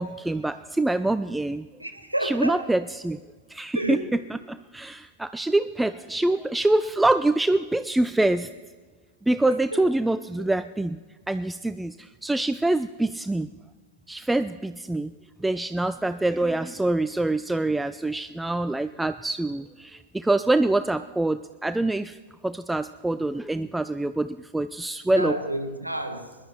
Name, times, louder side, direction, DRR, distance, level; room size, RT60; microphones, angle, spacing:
voice 1, 0.0-1.7 2.2-3.2 3.5-4.0 4.5-8.5 9.3-11.0 11.3-13.5 14.1-15.1 15.4-22.2 22.4-25.4, right 2 dB, 5° right, 12 dB, 0.3 m, -25 dB
voice 2, 1.8-2.7 3.7-4.1 9.5-9.9 10.4-10.5 25.2-26.4, right 1 dB, 85° right, 7 dB, 1.0 m, -30 dB
21.0 x 11.5 x 4.4 m, 1.4 s
figure-of-eight pair, 90°, 0 cm